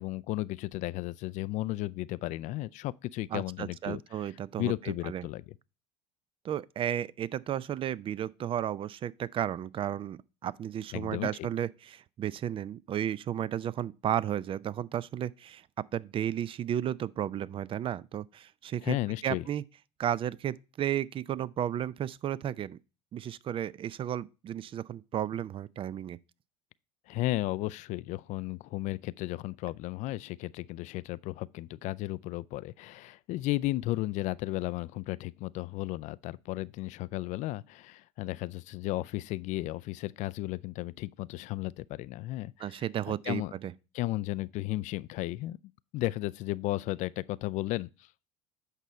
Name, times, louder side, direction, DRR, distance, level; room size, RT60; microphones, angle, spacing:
voice 1, 0.0-4.3 4.6-5.5 10.9-11.5 18.8-19.5 27.1-43.5 43.9-45.6 45.9-48.1, left 17 dB, 50° left, 0.4 m, -34 dB
voice 2, 3.3-5.2 6.4-15.6 15.9-19.0 19.2-19.6 20.0-22.8 23.1-26.2 42.6-43.7, right 10 dB, 35° right, 0.5 m, -33 dB
8.2 x 5.5 x 4.3 m
hypercardioid pair, 85°, 16 cm